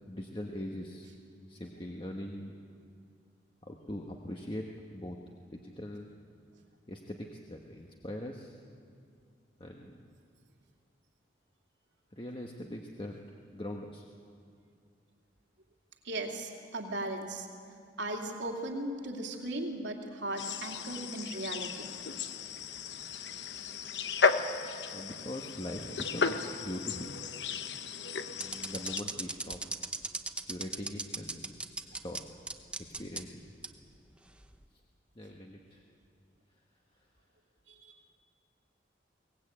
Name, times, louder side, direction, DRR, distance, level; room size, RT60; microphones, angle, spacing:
voice 1, 0.1-1.1 1.5-2.5 3.6-5.2 5.5-6.1 6.9-8.6 9.6-10.1 12.1-13.2 13.5-14.1 24.9-27.2 28.3-29.6 30.5-31.6 31.8-32.2 32.9-33.4 35.1-35.8, left 1 dB, 25° left, 1 dB, 1.2 m, -41 dB
voice 2, 16.0-17.5 18.0-21.9 37.7-37.8, right 1 dB, 80° right, 1 dB, 2.8 m, -37 dB
sound 1, 20.4-29.0, left 5 dB, 75° left, 1.0 m, -34 dB
sound 2, 28.4-32.2 32.5-33.2 33.6-33.7 34.4-34.6, right 2 dB, 5° right, 0.8 m, -36 dB
22.5 x 19.0 x 8.8 m, 2.3 s
head